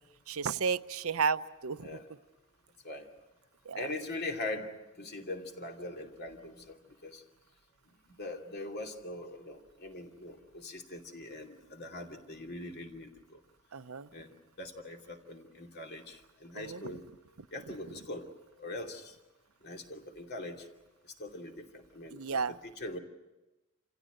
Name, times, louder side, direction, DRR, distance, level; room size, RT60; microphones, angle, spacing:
voice 1, 0.3-2.0 3.7-3.9 13.7-14.1 16.6-16.9 17.7-17.8 22.1-22.6, right 5 dB, 85° right, 13 dB, 0.7 m, -33 dB
voice 2, 3.7-4.7 5.0-7.2 8.2-13.4 14.1-17.0 17.5-18.3 18.6-19.1 19.6-20.7 21.2-22.2 22.6-23.0, left 2 dB, 50° left, 3 dB, 2.7 m, -42 dB
27.5 x 16.5 x 9.2 m, 1.0 s
head